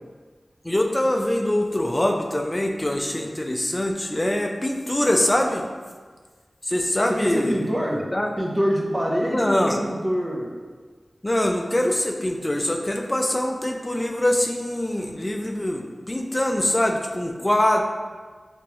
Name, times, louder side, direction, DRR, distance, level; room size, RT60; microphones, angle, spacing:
voice 1, 0.6-5.7 6.6-7.6 7.9-8.3 9.2-9.8 11.2-17.8, left 1 dB, 25° left, 3 dB, 0.4 m, -23 dB
voice 2, 7.1-8.1 8.4-10.5, equal, 30° right, -2 dB, 0.6 m, -25 dB
3.4 x 3.0 x 2.9 m, 1.5 s
wide cardioid pair, 60°, 0 cm